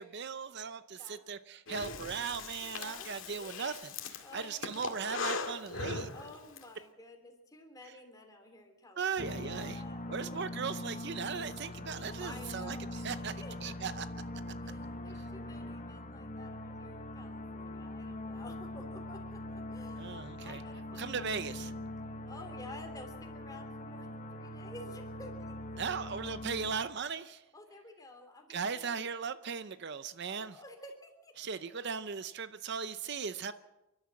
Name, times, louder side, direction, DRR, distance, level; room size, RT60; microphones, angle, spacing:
voice 1, 0.0-3.8 4.1-6.1 9.0-9.8 10.1-13.3 13.6-14.0 20.0-20.6 21.0-21.7 25.8-27.4 28.5-30.5 31.4-33.5, right 6 dB, 50° right, 13 dB, 0.6 m, -38 dB
Breathing, 1.7-6.6, left 4 dB, 60° left, 2.1 m, -39 dB
voice 2, 1.9-2.3 2.6-3.1 3.4-3.8 4.2-5.0 6.1-11.2 12.2-14.0 14.6-21.5 22.1-25.8 27.5-29.6 30.2-31.8, left 1 dB, 15° left, 4 dB, 3.2 m, -52 dB
sound 1, 9.2-26.7, left 1 dB, 35° left, 1.1 m, -42 dB
28.5 x 12.5 x 7.6 m, 1.0 s
head